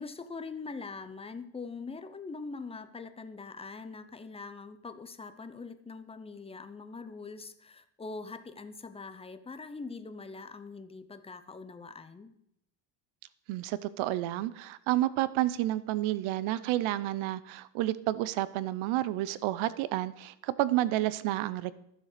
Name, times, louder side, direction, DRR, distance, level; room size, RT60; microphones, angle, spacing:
voice 1, 0.0-12.3, left 4 dB, 10° left, 10 dB, 0.6 m, -43 dB
voice 2, 13.5-21.7, right 15 dB, 75° right, 17 dB, 0.8 m, -30 dB
12.5 x 7.4 x 6.7 m, 0.78 s
cardioid pair, 150°, 48 cm